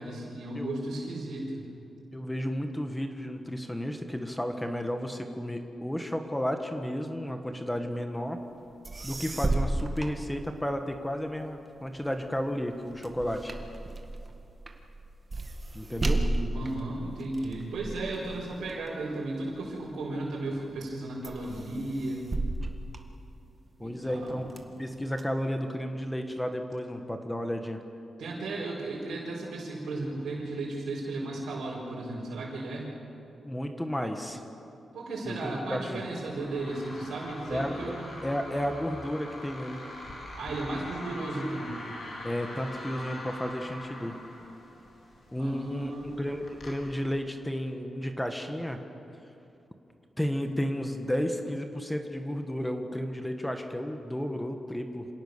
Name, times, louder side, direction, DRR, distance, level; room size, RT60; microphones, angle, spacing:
voice 1, 0.0-1.6 15.9-22.3 23.8-24.5 28.2-32.9 34.9-38.1 40.4-41.8 45.4-46.2, right 2 dB, 90° right, -5 dB, 4.8 m, -35 dB
voice 2, 2.1-8.4 9.0-13.5 15.7-16.2 23.8-24.5 24.8-27.8 33.4-34.4 35.3-36.0 37.5-37.9 38.2-39.8 42.2-44.2 45.3-48.8 50.2-55.1, equal, 10° left, 5 dB, 1.5 m, -32 dB
sound 1, 8.6-8.7 8.8-11.0 11.4-20.1 20.6-21.0 21.2-23.7 24.2-25.2, right 2 dB, 30° right, 1.8 m, -34 dB
sound 2, 35.9-47.0, left 1 dB, 55° left, 5.2 m, -43 dB
27.0 x 17.5 x 6.8 m, 2.7 s
cardioid pair, 100°, 0 cm